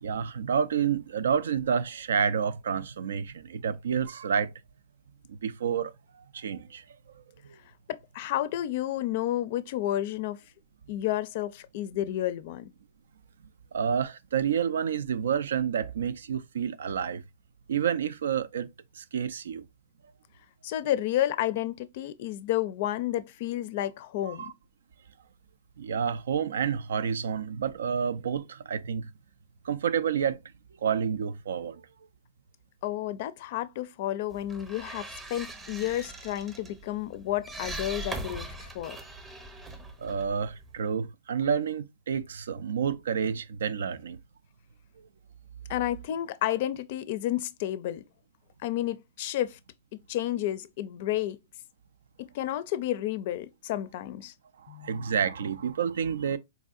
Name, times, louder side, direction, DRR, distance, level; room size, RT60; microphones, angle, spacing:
voice 1, 0.0-4.5 5.3-5.9 6.3-6.8 13.7-17.2 17.7-18.7 18.9-19.6 24.3-24.5 25.8-29.1 29.6-30.4 30.8-31.8 40.0-44.2 54.6-56.4, right 7 dB, 85° right, 0.4 m, -29 dB
voice 2, 7.9-10.4 10.9-12.7 20.6-24.4 32.8-39.0 45.7-48.0 48.6-49.6 50.1-51.4 52.2-54.3 54.7-55.0, left 13 dB, 50° left, 0.4 m, -31 dB
sound 1, 34.3-40.8, right 1 dB, 15° right, 0.7 m, -41 dB
4.1 x 2.6 x 2.4 m
hypercardioid pair, 145°, 0 cm